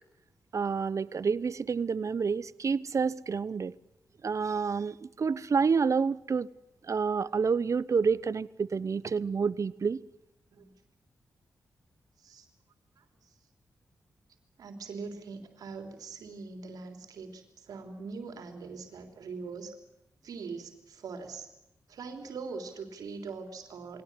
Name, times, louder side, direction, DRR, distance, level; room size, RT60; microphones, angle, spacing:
voice 1, 0.5-3.8 4.2-6.5 6.9-10.0, right 5 dB, 55° right, 0.9 m, -28 dB
voice 2, 14.6-19.7 20.2-21.5 21.9-24.0, right 4 dB, 85° right, 3.4 m, -42 dB
22.5 x 17.5 x 9.8 m
cardioid pair, 55°, 6 cm